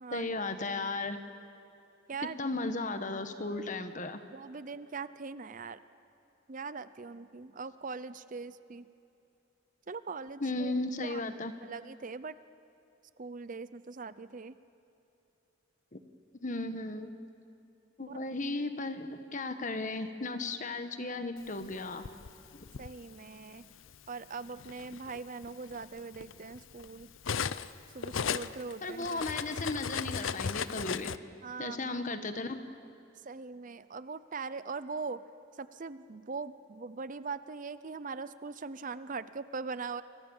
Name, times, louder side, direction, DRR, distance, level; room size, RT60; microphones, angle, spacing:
voice 1, 0.1-1.2 2.2-4.2 10.4-11.5 15.9-16.0 16.4-17.1 18.0-22.0 22.5-22.7 28.8-31.1 31.6-32.6, left 2 dB, 40° left, 8 dB, 1.4 m, -35 dB
voice 2, 4.3-5.8 6.5-8.8 9.9-10.7 11.0-11.3 11.6-12.3 13.2-14.6 18.0-18.2 22.8-23.7 24.1-27.1 27.9-29.3 31.4-32.0 33.2-35.2 35.6-40.0, right 4 dB, 40° right, 14 dB, 0.6 m, -41 dB
Cutlery silverware, 21.6-22.9 23.9-24.1 24.5-27.7 28.0-31.2, left 6 dB, 80° left, 0.6 m, -36 dB
29.0 x 24.0 x 7.3 m, 2.8 s
head